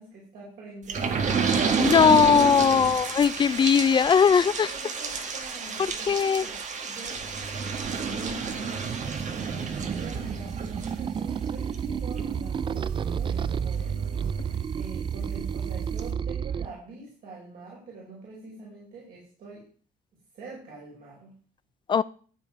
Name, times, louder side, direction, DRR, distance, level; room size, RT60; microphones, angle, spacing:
voice 1, 0.0-1.7 3.5-3.7 4.7-7.6 8.0-14.0 14.3-19.7 20.3-21.3, right 3 dB, 65° right, -5 dB, 5.4 m, -44 dB
sound 1, 0.9-15.2 15.6-15.7 16.0-16.1, right 5 dB, 45° right, 1.6 m, -31 dB
voice 2, 1.8-4.7 6.1-6.5 21.9-22.0, left 6 dB, 30° left, 18 dB, 0.4 m, -19 dB
sound 2, 8.7-16.6, right 7 dB, 30° right, 0.4 m, -31 dB
14.0 x 7.6 x 4.7 m, 0.43 s
cardioid pair, 110°, 17 cm